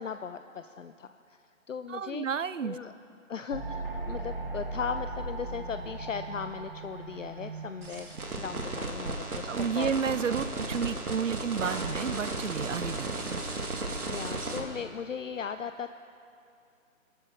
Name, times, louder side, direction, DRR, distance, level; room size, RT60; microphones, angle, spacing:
voice 1, 0.0-1.4 1.7-2.3 2.6-2.9 3.3-9.9 14.1-15.9, left 6 dB, 65° left, 9 dB, 0.6 m, -37 dB
voice 2, 1.9-2.8 9.5-13.4, right 7 dB, 60° right, 16 dB, 0.5 m, -31 dB
sound 1, 3.5-8.6, right 3 dB, 40° right, 1.0 m, -38 dB
sound 2, 7.8-14.6, right 2 dB, 90° right, 2.3 m, -34 dB
22.0 x 13.0 x 3.8 m, 2.6 s
hypercardioid pair, 175°, 42 cm